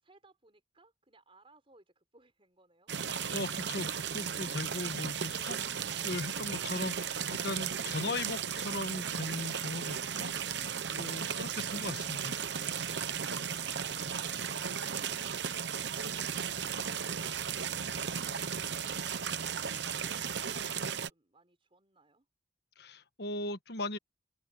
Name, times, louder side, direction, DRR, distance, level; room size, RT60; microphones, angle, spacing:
voice 1, 0.0-2.9 20.0-22.3, right 2 dB, 30° right, 5.3 m, -64 dB
sound 1, 2.9-21.1, right 7 dB, 65° right, 1.0 m, -35 dB
voice 2, 3.3-5.6 6.0-10.3 10.9-12.4 22.8-24.0, left 2 dB, 60° left, 1.4 m, -38 dB
head